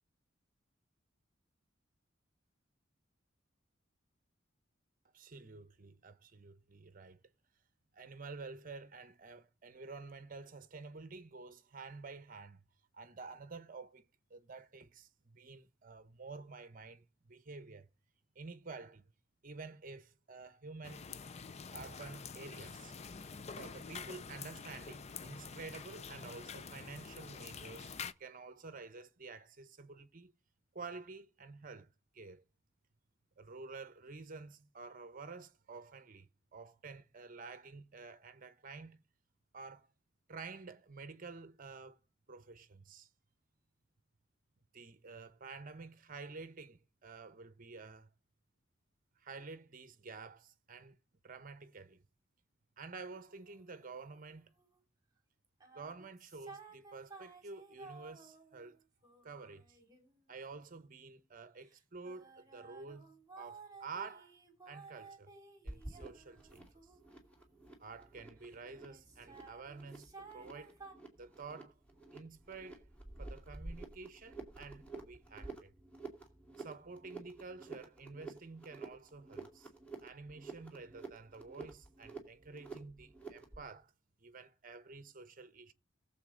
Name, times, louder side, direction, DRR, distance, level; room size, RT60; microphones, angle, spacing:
voice 1, 5.1-7.2 7.9-12.6 12.9-14.0 14.3-17.9 18.3-19.1 19.4-21.0 21.7-22.9 23.6-30.3 30.7-31.9 32.1-32.4 33.4-39.0 39.5-39.9 40.3-42.0 42.3-43.1 44.7-48.1 49.2-51.0 51.2-52.0 52.8-54.5 55.7-58.8 59.2-59.8 60.3-64.3 64.7-65.3 65.6-66.7 67.8-70.8 71.2-71.8 72.1-72.8 73.2-75.7 76.6-79.7 80.0-83.9 84.2-85.7, right 4 dB, 45° right, 0.9 m, -50 dB
sound 1, 20.8-28.1, left 5 dB, 35° left, 0.5 m, -47 dB
sound 2, 53.1-54.8 55.4-61.1 61.6-68.6 68.9-70.9, right 4 dB, 20° right, 2.7 m, -56 dB
sound 3, 65.7-83.7, right 3 dB, 5° left, 2.5 m, -50 dB
20.0 x 7.3 x 3.8 m
head